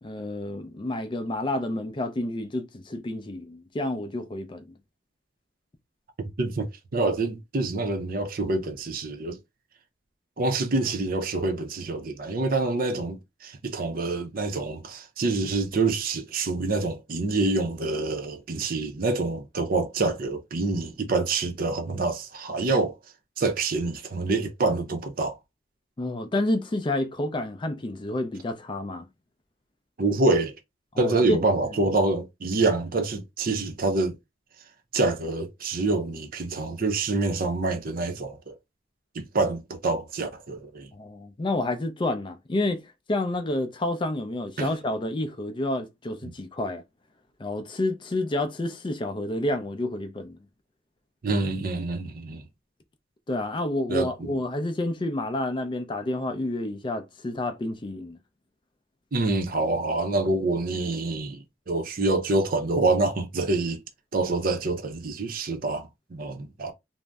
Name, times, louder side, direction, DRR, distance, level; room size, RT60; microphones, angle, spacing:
voice 1, 0.0-4.7 26.0-29.1 30.9-31.4 40.9-42.8 43.1-46.8 47.4-50.4 53.3-58.2, left 1 dB, 25° left, 0.4 m, -29 dB
voice 2, 6.4-9.4 10.4-23.0 23.4-25.4 30.0-30.5 31.0-34.1 34.9-38.6 39.1-40.9 44.6-44.7 46.2-46.3 51.2-52.4 53.9-54.4 59.1-63.8 64.1-66.7, right 3 dB, 50° right, 0.6 m, -26 dB
2.6 x 2.0 x 3.3 m
head